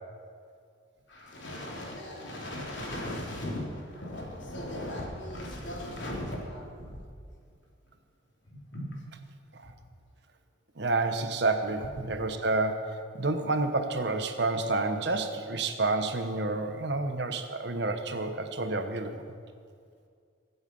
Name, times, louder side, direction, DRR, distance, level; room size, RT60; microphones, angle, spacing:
voice 1, 1.1-7.0 8.4-9.1 9.6-9.7, left 1 dB, 65° left, -3 dB, 3.4 m, -38 dB
voice 2, 10.8-19.2, right 3 dB, 55° right, 7 dB, 1.0 m, -29 dB
22.5 x 8.1 x 5.5 m, 2.2 s
head